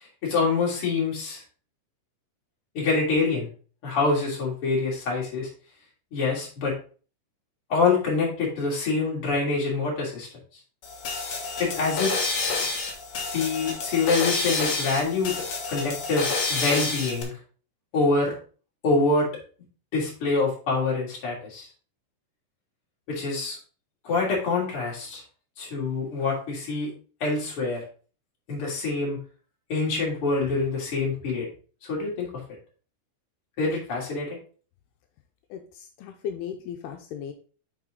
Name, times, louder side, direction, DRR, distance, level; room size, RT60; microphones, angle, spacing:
voice 1, 0.2-1.4 2.7-3.5 3.8-5.5 6.1-6.7 7.7-10.3 11.6-12.1 13.3-15.3 15.7-17.3 17.9-18.3 18.8-19.3 19.9-21.7 23.1-23.6 24.0-25.2 25.6-26.9 27.2-27.8 28.5-29.2 29.7-31.5 31.9-32.3 33.6-34.4, left 3 dB, 35° left, -4 dB, 3.3 m, -25 dB
sound 1, 10.8-17.2, left 3 dB, 55° left, 2.1 m, -29 dB
voice 2, 35.5-37.3, left 8 dB, 85° left, 4 dB, 2.7 m, -36 dB
7.8 x 5.0 x 3.8 m, 0.39 s
omnidirectional pair, 4.6 m